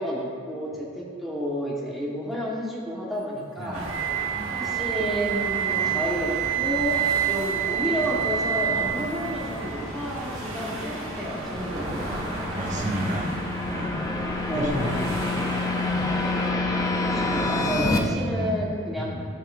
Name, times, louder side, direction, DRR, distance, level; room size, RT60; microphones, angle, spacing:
voice 1, 0.0-3.9 4.5-12.5 14.4-15.1 16.9-19.1, equal, ahead, -6 dB, 1.4 m, -31 dB
sound 1, 3.7-16.5, right 1 dB, 90° right, 1.5 m, -35 dB
Wind instrument woodwind instrument, 3.8-9.8, right 12 dB, 75° right, 0.4 m, -27 dB
sound 2, 6.5-18.0, left 2 dB, 15° left, 0.5 m, -30 dB
voice 2, 12.1-13.3 13.7-14.0 14.5-14.9 15.2-16.1 18.0-18.6 19.0-19.2, equal, 35° right, -1 dB, 1.0 m, -33 dB
12.0 x 5.5 x 2.6 m, 2.3 s
head